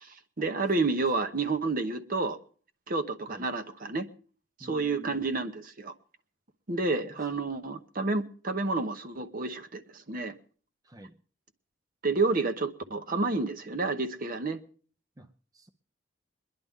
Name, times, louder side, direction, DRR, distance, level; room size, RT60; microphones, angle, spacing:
voice 1, 0.0-2.4 2.9-4.1 4.6-5.9 6.7-10.3 12.0-14.6, right 3 dB, 50° right, 0.9 m, -30 dB
voice 2, 4.6-5.3 10.8-11.1 15.2-15.7, equal, 20° right, 0.5 m, -49 dB
22.5 x 10.5 x 3.6 m
head